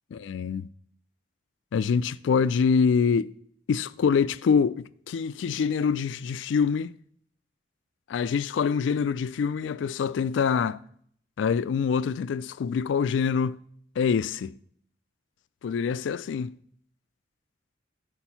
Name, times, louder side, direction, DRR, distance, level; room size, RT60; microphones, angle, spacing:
voice 1, 0.1-0.7 1.7-3.3 3.7-6.9 8.1-10.8 11.4-13.6 14.0-14.5 15.6-16.5, left 6 dB, 75° left, 0.3 m, -25 dB
7.4 x 4.4 x 5.6 m
head